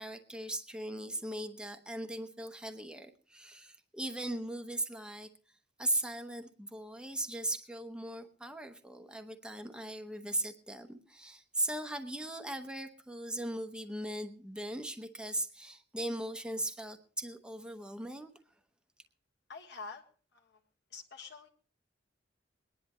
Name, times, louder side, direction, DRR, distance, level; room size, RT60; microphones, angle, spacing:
voice 1, 0.0-5.3 5.8-18.3, right 1 dB, 5° right, 6 dB, 0.9 m, -38 dB
voice 2, 19.5-20.0 20.3-20.6 20.9-21.5, left 4 dB, 65° left, 1 dB, 1.5 m, -46 dB
22.5 x 10.5 x 3.1 m, 0.41 s
head